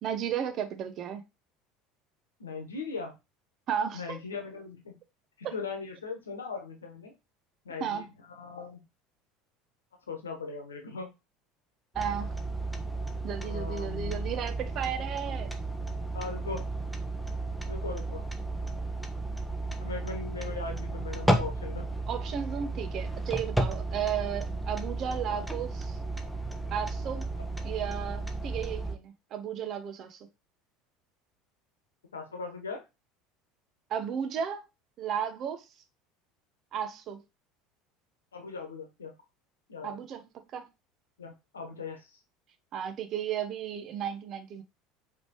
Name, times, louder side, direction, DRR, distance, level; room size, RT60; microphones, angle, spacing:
voice 1, 0.0-1.2 3.7-4.2 5.4-5.5 7.8-8.1 11.9-12.3 13.2-15.5 22.1-26.0 26.7-27.3 27.6-30.3 33.9-34.6 35.0-35.6 36.7-37.2 39.8-40.3 40.5-40.6 42.7-44.6, right 8 dB, 45° right, 0.7 m, -34 dB
voice 2, 2.4-3.1 3.9-5.0 5.4-7.1 7.6-8.8 10.1-11.1 13.4-14.4 16.1-16.6 17.7-18.2 19.8-21.8 25.3-25.4 32.1-32.8 38.3-39.1 39.7-40.0 41.2-42.2, left 4 dB, 80° left, 1.1 m, -39 dB
sound 1, 11.9-29.0, right 2 dB, ahead, 0.8 m, -33 dB
5.1 x 3.4 x 3.1 m
figure-of-eight pair, 70°, 0 cm